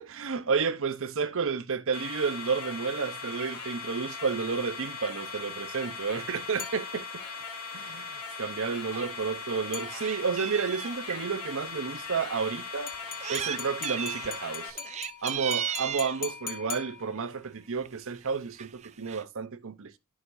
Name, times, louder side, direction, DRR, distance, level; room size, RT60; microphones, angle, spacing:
voice 1, 0.0-7.2 7.7-12.9 13.3-14.8 15.2-20.0, right 5 dB, 65° right, 0.8 m, -31 dB
sound 1, 1.9-14.7, left 5 dB, 75° left, 1.5 m, -39 dB
sound 2, 6.6-7.4 9.7-10.5 12.9-17.5, left 7 dB, 40° left, 1.2 m, -42 dB
Meow, 8.9-9.1 9.5-11.2 11.9-12.0 12.9-13.6 13.8-14.3 14.7-16.2 17.2-17.4 17.8-17.9 18.1-18.3 18.6-19.2, right 9 dB, 30° right, 0.3 m, -35 dB
11.5 x 6.3 x 2.7 m
head